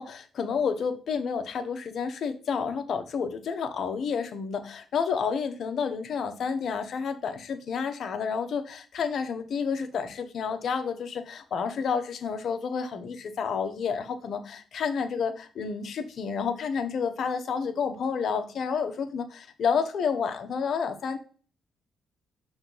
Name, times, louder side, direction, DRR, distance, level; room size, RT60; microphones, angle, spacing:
voice 1, 0.0-21.2, left 6 dB, 60° left, 7 dB, 1.1 m, -30 dB
5.9 x 3.5 x 5.5 m, 0.38 s
cardioid pair, 90°, 0 cm